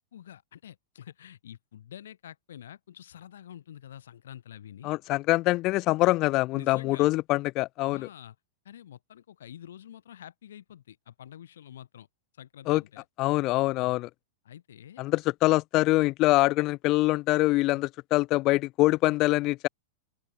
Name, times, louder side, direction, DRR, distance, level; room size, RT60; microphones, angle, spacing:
voice 1, 0.1-4.9 6.5-7.1 7.9-8.3 8.6-12.1 12.3-13.0 13.8-14.0 14.4-15.0 17.7-17.8, left 10 dB, 75° left, 2.9 m, -47 dB
voice 2, 4.8-8.1 12.7-12.8 13.2-14.1 15.0-19.7, left 19 dB, 45° left, 0.3 m, -24 dB
open air
hypercardioid pair, 105°, 0 cm